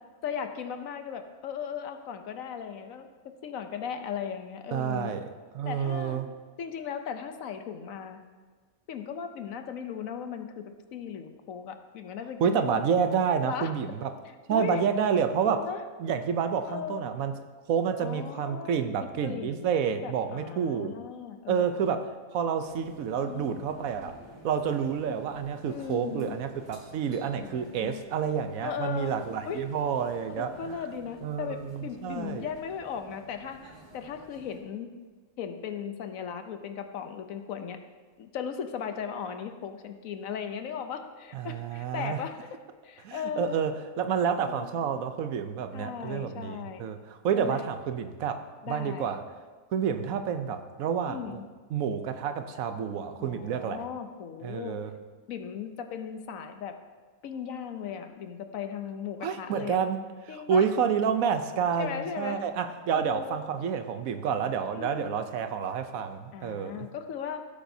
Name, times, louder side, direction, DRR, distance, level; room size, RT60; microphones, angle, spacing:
voice 1, 0.2-3.1 3.4-5.1 5.6-6.2 6.6-8.2 8.9-12.8 13.4-13.7 14.5-14.8 15.4-15.8 16.7-17.0 18.0-19.7 20.0-22.1 23.2-24.1 25.7-26.4 27.4-28.0 28.6-29.1 29.4-29.6 30.4-33.6 33.9-34.9 35.4-37.8 38.2-42.5 42.8-43.5 44.4-44.7 45.7-46.9 47.3-47.6 48.6-49.1 51.1-51.5 53.2-54.8 55.3-56.8 57.2-59.8 60.3-60.7 61.8-62.4 62.9-63.4 64.7-65.1 66.3-67.5, left 7 dB, 70° left, 7 dB, 1.1 m, -37 dB
voice 2, 4.7-6.3 12.4-14.1 14.5-15.7 16.0-17.4 17.7-21.0 21.5-24.2 24.4-30.8 31.2-32.5 41.3-42.2 43.0-49.2 49.7-51.4 51.7-53.9 54.4-54.9 59.2-60.0 60.3-66.9, right 7 dB, 75° right, 9 dB, 1.1 m, -29 dB
sound 1, 22.6-34.6, equal, 30° right, 2.2 m, -52 dB
15.5 x 8.7 x 2.7 m, 1.4 s
omnidirectional pair, 1.5 m